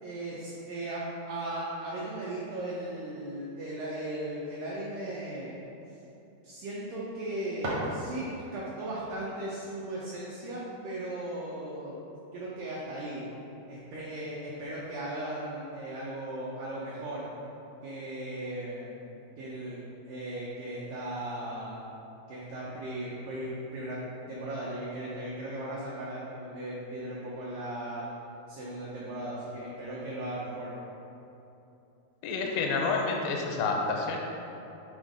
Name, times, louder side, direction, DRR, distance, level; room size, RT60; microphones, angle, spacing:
voice 1, 0.0-5.6 6.4-12.0 12.3-13.3 13.7-17.3 17.8-18.9 19.4-21.8 22.3-24.0 24.3-28.1 28.5-30.7, right 1 dB, 85° right, -6 dB, 1.9 m, -37 dB
sound 1, 7.2-8.6, right 1 dB, 70° right, 1.3 m, -36 dB
voice 2, 32.2-34.2, left 4 dB, 85° left, 0 dB, 2.8 m, -29 dB
7.0 x 3.6 x 5.0 m, 3.0 s
omnidirectional pair, 4.9 m